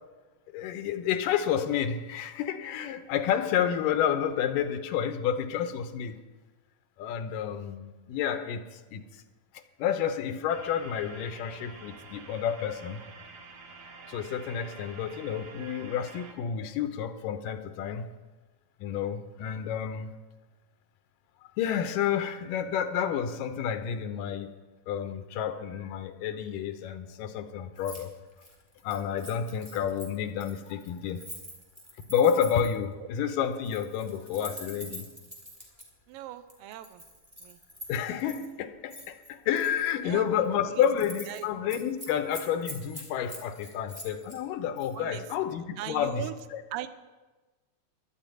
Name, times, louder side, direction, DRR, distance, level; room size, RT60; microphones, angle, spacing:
voice 1, 0.5-6.2 7.0-9.0 9.8-13.0 14.1-18.0 18.8-20.1 21.6-24.5 24.9-28.1 28.8-31.2 32.1-35.1 37.9-46.2, left 8 dB, 85° left, 9 dB, 2.5 m, -30 dB
sound 1, 10.5-16.3, right 4 dB, 60° right, 1.0 m, -48 dB
Keys jangling, 27.8-28.0 28.3-32.8 33.5-35.8 36.5-38.5 38.9-39.9 40.3-40.5 40.8-41.4 41.7-44.4 44.8-44.9, equal, 10° right, 2.4 m, -45 dB
voice 2, 36.1-37.0 37.4-37.6 40.0-40.9 41.3-41.5 45.0-46.3 46.7-46.9, right 13 dB, 90° right, 11 dB, 2.5 m, -40 dB
12.0 x 8.6 x 9.1 m, 1.2 s
omnidirectional pair, 3.9 m